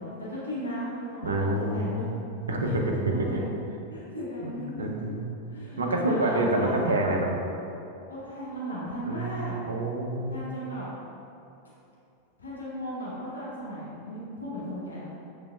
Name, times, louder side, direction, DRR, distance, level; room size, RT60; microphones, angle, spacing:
voice 1, 0.0-2.0 2.6-3.5 3.9-5.1 5.5-6.9 8.1-9.6 10.3-10.9 12.4-15.2, equal, 75° left, -8 dB, 1.0 m, -36 dB
voice 2, 1.2-2.1 2.5-3.4 4.2-5.4 5.8-7.3 9.0-10.5, right 1 dB, 70° right, 1 dB, 0.5 m, -28 dB
6.8 x 3.2 x 2.3 m, 2.7 s
figure-of-eight pair, 90°, 0 cm